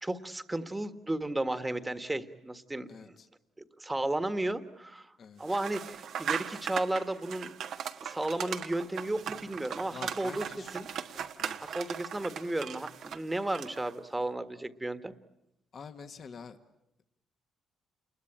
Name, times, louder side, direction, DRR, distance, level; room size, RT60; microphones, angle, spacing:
voice 1, 0.0-3.1 3.8-5.1 5.4-7.5 8.0-10.4 10.7-10.9 11.6-15.1, right 1 dB, 15° right, 10 dB, 1.6 m, -34 dB
voice 2, 2.9-3.3 5.2-5.6 9.9-10.8 11.4-11.6 15.7-16.6, left 5 dB, 50° left, 7 dB, 1.7 m, -47 dB
sound 1, 5.5-13.9, right 8 dB, 70° right, 1.4 m, -38 dB
28.5 x 21.5 x 8.9 m, 0.85 s
cardioid pair, 90°, 0 cm